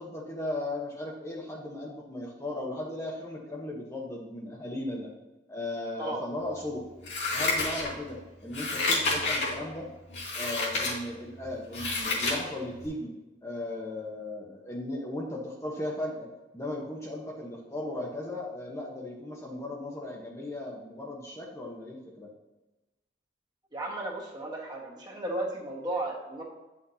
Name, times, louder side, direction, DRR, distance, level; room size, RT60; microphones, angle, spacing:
voice 1, 0.0-5.1 5.5-6.8 7.3-9.9 10.3-13.1 13.4-16.3 16.5-22.3, left 1 dB, 15° left, -2 dB, 1.0 m, -36 dB
Scissors, 7.0-8.1 8.5-9.5 10.1-10.9 11.4-12.4 12.8-12.9, left 3 dB, 75° left, 2.3 m, -29 dB
voice 2, 23.7-26.4, right 2 dB, 25° right, -2 dB, 1.4 m, -34 dB
9.3 x 6.0 x 2.8 m, 1.1 s
head